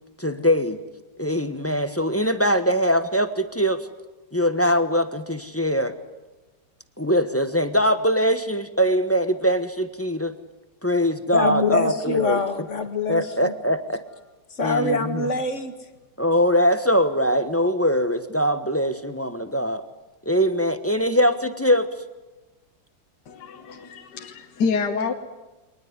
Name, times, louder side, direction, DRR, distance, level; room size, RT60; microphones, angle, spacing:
voice 1, 0.2-0.8 1.2-3.9 4.3-5.9 7.0-10.3 10.8-12.4 13.1-14.0 14.6-15.3 16.2-19.8 20.2-21.9, equal, 10° left, 10 dB, 0.9 m, -22 dB
voice 2, 11.3-13.5 14.5-15.7, left 3 dB, 40° left, 8 dB, 2.1 m, -25 dB
voice 3, 23.3-25.1, left 5 dB, 65° left, 5 dB, 2.0 m, -27 dB
23.5 x 19.0 x 9.7 m, 1.1 s
omnidirectional pair, 2.1 m